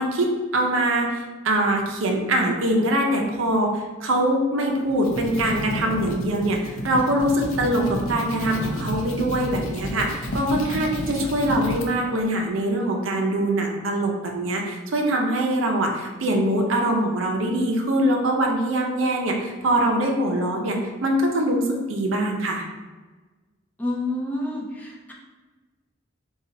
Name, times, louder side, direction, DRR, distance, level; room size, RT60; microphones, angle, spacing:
voice 1, 0.0-22.7, right 1 dB, 80° right, 1 dB, 0.6 m, -23 dB
sound 1, 4.8-11.9, equal, 80° left, 0.5 m, -31 dB
voice 2, 23.8-25.1, left 2 dB, 10° left, -3 dB, 0.4 m, -28 dB
4.0 x 2.3 x 2.6 m, 1.3 s
head